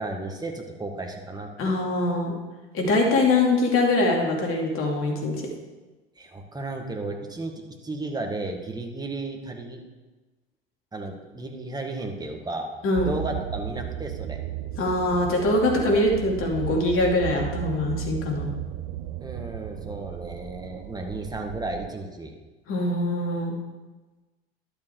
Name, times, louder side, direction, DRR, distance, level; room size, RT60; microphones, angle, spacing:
voice 1, 0.0-1.5 6.2-9.8 10.9-12.7 13.0-14.4 19.2-22.3, right 2 dB, 15° right, 3 dB, 1.8 m, -34 dB
voice 2, 1.6-2.3 2.7-5.4 12.8-13.1 14.8-18.5 22.7-23.6, left 2 dB, 45° left, 1 dB, 2.6 m, -23 dB
sound 1, 12.9-21.9, right 13 dB, 65° right, 0.6 m, -35 dB
11.5 x 6.9 x 4.7 m, 1.2 s
hypercardioid pair, 70°, 30 cm